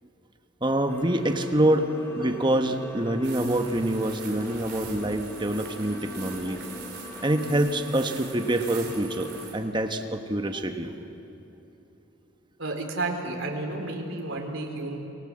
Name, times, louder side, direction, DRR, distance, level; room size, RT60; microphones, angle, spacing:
voice 1, 0.6-6.6 7.2-10.9, right 1 dB, 25° right, 6 dB, 1.2 m, -26 dB
sound 1, 0.9-9.5, left 1 dB, 10° left, 3.4 m, -41 dB
sound 2, 3.2-9.5, right 6 dB, 50° right, 4.4 m, -43 dB
voice 2, 12.6-15.0, right 2 dB, 70° right, 2 dB, 3.9 m, -31 dB
29.5 x 21.0 x 7.6 m, 3.0 s
head